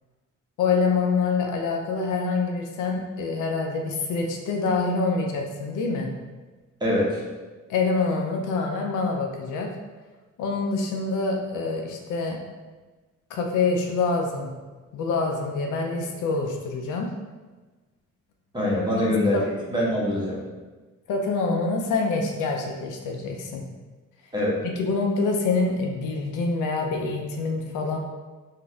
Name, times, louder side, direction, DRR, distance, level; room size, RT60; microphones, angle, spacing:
voice 1, 0.6-6.1 7.7-9.7 10.4-12.4 13.3-14.5 14.9-17.1 19.3-19.4 21.1-23.6 24.6-28.0, left 4 dB, 85° left, 2 dB, 0.6 m, -26 dB
voice 2, 6.8-7.2 18.5-19.4 19.7-20.4 24.3-24.6, left 1 dB, 15° right, -5 dB, 1.1 m, -23 dB
4.0 x 2.6 x 2.4 m, 1.3 s
cardioid pair, 90°, 30 cm